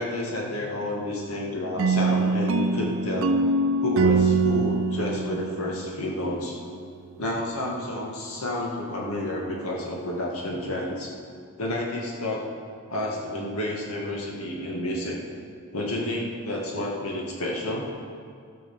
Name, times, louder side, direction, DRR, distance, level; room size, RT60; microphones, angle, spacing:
voice 1, 0.0-3.3 3.8-6.6 7.2-11.2 11.6-12.4 12.9-15.2 15.7-17.9, left 1 dB, 85° left, -2 dB, 2.1 m, -30 dB
sound 1, 1.8-6.7, right 3 dB, 65° right, 0.6 m, -24 dB
13.5 x 6.9 x 7.2 m, 2.2 s
head